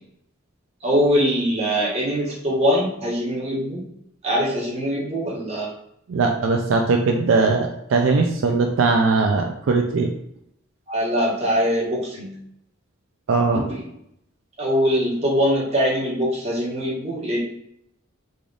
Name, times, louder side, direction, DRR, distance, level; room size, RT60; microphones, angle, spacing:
voice 1, 0.8-3.8 4.2-5.7 10.9-12.4 13.5-13.8 14.6-17.4, equal, 30° right, -5 dB, 1.2 m, -22 dB
voice 2, 6.1-10.1 13.3-13.6, right 3 dB, 75° right, 2 dB, 0.4 m, -20 dB
3.8 x 3.3 x 2.4 m, 0.75 s
head